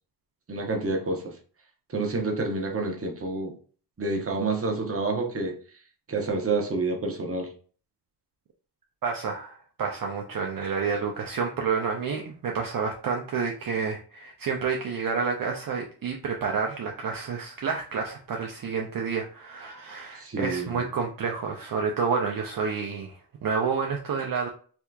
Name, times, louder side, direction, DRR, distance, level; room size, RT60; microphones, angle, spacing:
voice 1, 0.5-1.3 1.9-3.5 4.0-5.6 6.1-7.5 20.2-20.8, right 3 dB, 35° right, 2 dB, 0.9 m, -28 dB
voice 2, 9.0-24.5, right 5 dB, 55° right, 1 dB, 0.6 m, -29 dB
3.4 x 2.8 x 2.3 m, 0.41 s
cardioid pair, 85°, 40 cm